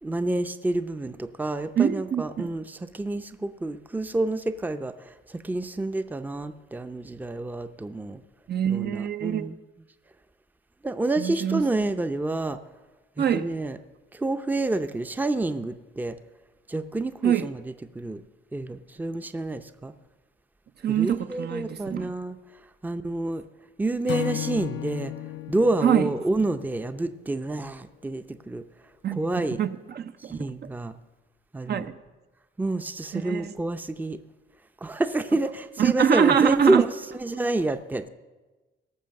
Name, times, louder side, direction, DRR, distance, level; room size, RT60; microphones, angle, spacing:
voice 1, 0.0-8.2 8.6-9.6 10.8-12.6 13.2-13.8 14.1-16.2 16.7-17.6 17.9-18.2 18.5-19.9 20.9-22.4 22.8-23.4 23.8-25.1 25.5-28.6 29.1-29.6 30.2-30.9 31.5-31.9 32.6-34.2 34.8-36.9 37.2-38.1, right 2 dB, 10° right, 0.6 m, -28 dB
voice 2, 1.8-2.5 8.5-9.5 11.2-11.6 13.2-13.5 17.2-17.5 20.8-22.1 25.8-26.1 29.0-30.5 31.7-32.0 33.1-33.5 35.8-36.9, right 8 dB, 55° right, 0.7 m, -24 dB
Acoustic guitar / Strum, 24.1-27.4, left 14 dB, 70° left, 0.5 m, -35 dB
17.5 x 6.8 x 6.5 m
cardioid pair, 90°, 20 cm